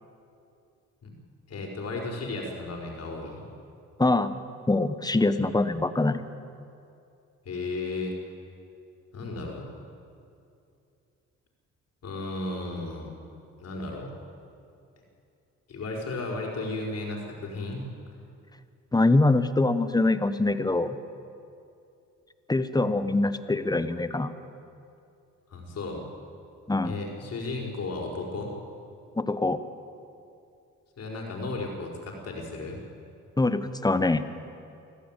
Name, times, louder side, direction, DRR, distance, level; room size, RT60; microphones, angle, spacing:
voice 1, 1.5-3.4 7.5-8.1 9.1-9.6 12.0-13.1 13.6-14.1 15.7-17.9 25.5-26.0 26.8-28.5 31.0-32.8, left 2 dB, 55° left, 0 dB, 5.2 m, -34 dB
voice 2, 4.0-4.3 4.7-6.2 18.9-21.0 22.5-24.3 26.7-26.9 29.2-29.6 33.4-34.2, left 2 dB, 15° left, 12 dB, 1.2 m, -24 dB
25.0 x 15.0 x 9.2 m, 2.6 s
cardioid pair, 90°, 30 cm